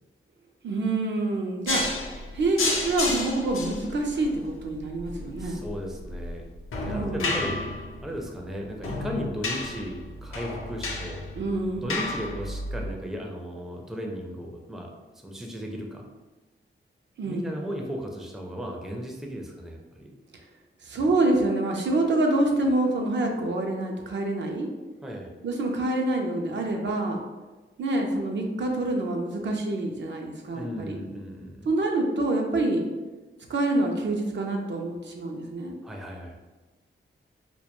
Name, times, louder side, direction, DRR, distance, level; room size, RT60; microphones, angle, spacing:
voice 1, 0.6-1.8 2.3-5.6 6.9-7.4 11.4-12.0 17.2-17.6 20.8-24.7 25.4-27.2 27.8-31.0 31.7-32.8 33.5-35.8, right 2 dB, 60° right, 2 dB, 0.4 m, -26 dB
sound 1, 1.7-12.9, left 2 dB, 85° left, 0.5 m, -32 dB
voice 2, 5.3-6.4 6.8-7.6 8.0-11.2 11.7-16.0 17.2-20.1 25.0-25.3 30.5-31.7 35.8-36.4, equal, ahead, 0 dB, 0.4 m, -36 dB
2.2 x 2.1 x 2.9 m, 1.2 s
cardioid pair, 65°, 21 cm